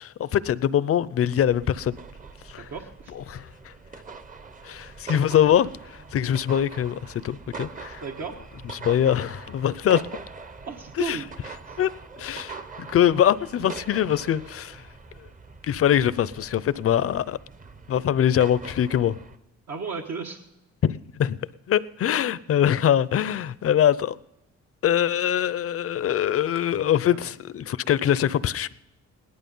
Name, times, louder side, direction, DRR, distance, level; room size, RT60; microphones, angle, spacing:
voice 1, 0.0-2.0 2.4-2.7 3.1-3.7 4.6-8.0 8.6-10.0 11.0-11.2 11.8-14.9 15.2-15.3 15.6-17.4 17.9-19.2 20.8-21.4 21.7-24.2 24.8-28.7, left 10 dB, 50° left, 0.6 m, -23 dB
sound 1, 1.4-19.4, right 4 dB, 25° right, 0.9 m, -42 dB
voice 2, 2.6-3.1 8.0-8.4 10.7-11.3 11.7-11.8 19.7-20.4 27.1-27.3, right 5 dB, 60° right, 1.5 m, -34 dB
18.0 x 11.5 x 5.5 m
cardioid pair, 90°, 30 cm